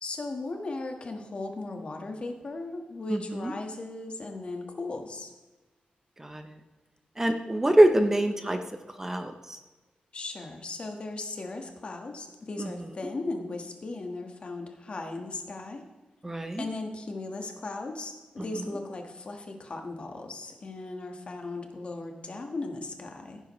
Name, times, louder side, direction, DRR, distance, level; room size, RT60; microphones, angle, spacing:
voice 1, 0.0-5.3 10.1-15.8 16.6-23.4, left 2 dB, 40° left, 4 dB, 1.5 m, -37 dB
voice 2, 3.1-3.5 6.2-6.6 7.2-8.6 9.0-9.6 12.6-12.7 16.2-16.6, right 1 dB, 15° right, 7 dB, 0.7 m, -24 dB
16.0 x 9.8 x 3.2 m, 1.2 s
wide cardioid pair, 145°, 3 cm